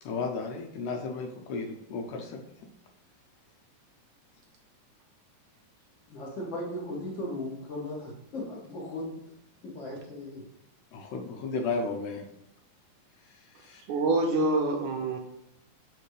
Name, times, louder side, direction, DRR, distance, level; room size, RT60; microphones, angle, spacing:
voice 1, 0.0-2.4 10.9-12.3 13.2-13.8, left 4 dB, 75° left, 3 dB, 2.1 m, -34 dB
voice 2, 6.1-9.2 9.6-10.4, left 1 dB, 45° left, -5 dB, 1.9 m, -37 dB
voice 3, 13.9-15.2, right 2 dB, 80° right, 2 dB, 1.9 m, -26 dB
6.7 x 5.0 x 3.3 m, 0.78 s
omnidirectional pair, 4.0 m